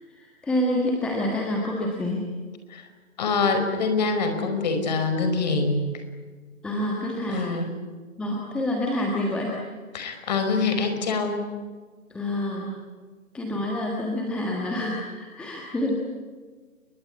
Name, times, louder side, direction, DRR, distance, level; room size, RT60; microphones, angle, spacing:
voice 1, 0.1-2.2 6.6-7.6 8.2-9.6 10.0-10.3 12.1-12.7 13.3-16.0, left 1 dB, ahead, -1 dB, 1.5 m, -28 dB
voice 2, 3.2-5.8 7.3-7.8 9.9-11.4, left 4 dB, 30° left, 7 dB, 5.2 m, -25 dB
30.0 x 23.0 x 8.4 m, 1.5 s
figure-of-eight pair, 150°, 42 cm